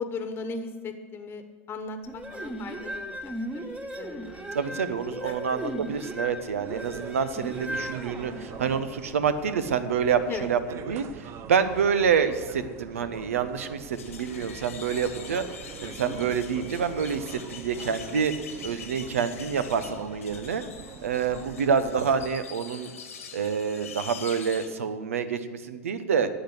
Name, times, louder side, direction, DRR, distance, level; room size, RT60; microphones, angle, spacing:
voice 1, 0.0-1.4 1.7-3.7 4.0-4.4 4.7-5.4 10.3-10.5 15.9-16.2, left 4 dB, 30° left, 8 dB, 1.2 m, -37 dB
sound 1, 2.1-8.9, right 1 dB, 15° right, 1.4 m, -36 dB
voice 2, 4.5-10.6 10.9-15.5 15.8-18.3 18.6-20.6 21.0-22.9 23.3-26.3, right 6 dB, 75° right, 11 dB, 0.9 m, -27 dB
sound 2, 6.6-22.4, right 8 dB, 40° right, 0.7 m, -44 dB
sound 3, 13.9-24.7, left 7 dB, 80° left, 1.6 m, -44 dB
11.5 x 8.0 x 8.1 m, 1.5 s
hypercardioid pair, 85°, 7 cm